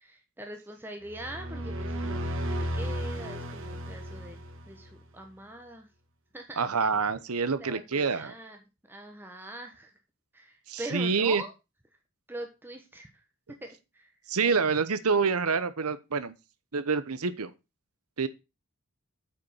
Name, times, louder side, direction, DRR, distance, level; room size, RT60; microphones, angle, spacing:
voice 1, 0.0-4.4 4.7-5.9 6.3-6.9 7.6-8.6 8.9-9.9 10.3-11.5 12.3-13.1 13.6-14.1, right 1 dB, 10° right, 1.2 m, -42 dB
sound 1, 1.1-5.0, equal, 60° right, 1.5 m, -34 dB
voice 2, 6.6-8.3 10.7-11.4 14.3-16.3 16.7-17.5 18.2-18.3, right 5 dB, 85° right, 0.9 m, -27 dB
8.5 x 5.4 x 5.6 m
head